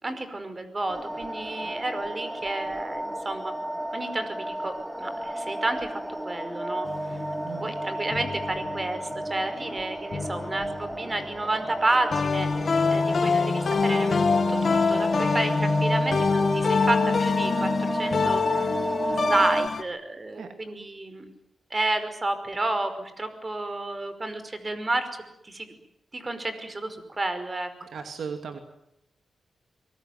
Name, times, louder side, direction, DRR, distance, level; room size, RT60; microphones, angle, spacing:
voice 1, 0.0-3.5 3.9-6.9 7.6-18.7 19.1-21.3 21.7-25.1 25.4-25.7 26.1-27.7, right 2 dB, 30° right, 10 dB, 5.2 m, -31 dB
sound 1, 0.9-19.7, right 1 dB, 5° right, 1.3 m, -32 dB
sound 2, 6.8-9.4 10.1-11.6 12.1-19.8, left 4 dB, 55° left, 2.1 m, -26 dB
voice 2, 7.4-7.7 20.3-20.5 27.9-28.6, right 6 dB, 75° right, 6 dB, 2.6 m, -36 dB
24.0 x 22.0 x 9.5 m, 0.79 s
cardioid pair, 65°, 0 cm